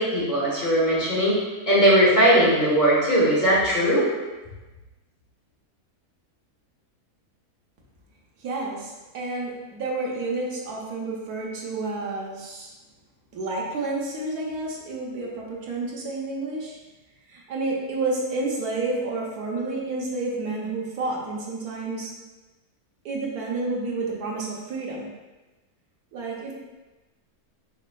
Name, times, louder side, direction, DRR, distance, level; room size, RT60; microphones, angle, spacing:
voice 1, 0.0-4.1, equal, 30° left, -8 dB, 1.4 m, -19 dB
voice 2, 8.4-12.7 13.3-16.8 17.3-22.1 23.0-25.1 26.1-26.5, right 3 dB, 80° right, -2 dB, 1.3 m, -30 dB
5.3 x 4.1 x 2.2 m, 1.2 s
omnidirectional pair, 1.6 m